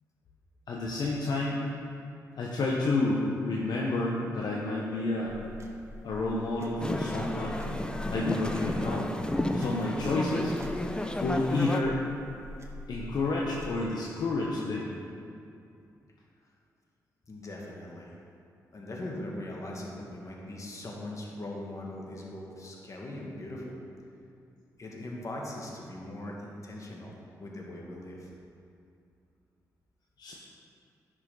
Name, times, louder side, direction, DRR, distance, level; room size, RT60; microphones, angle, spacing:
voice 1, 0.7-1.6 2.4-5.4 6.0-7.6 8.1-9.1 9.5-10.5 11.2-12.0 12.9-14.9 30.2-30.3, left 2 dB, 65° left, -3 dB, 1.1 m, -30 dB
sound 1, 5.3-13.8, left 1 dB, 40° right, 1.4 m, -44 dB
sound 2, 6.8-11.8, left 1 dB, 10° left, 0.8 m, -32 dB
voice 2, 17.3-18.2 18.7-23.8 24.8-28.3, left 1 dB, 45° left, -2 dB, 2.1 m, -40 dB
10.5 x 6.2 x 4.0 m, 2.5 s
supercardioid pair, 45°, 7 cm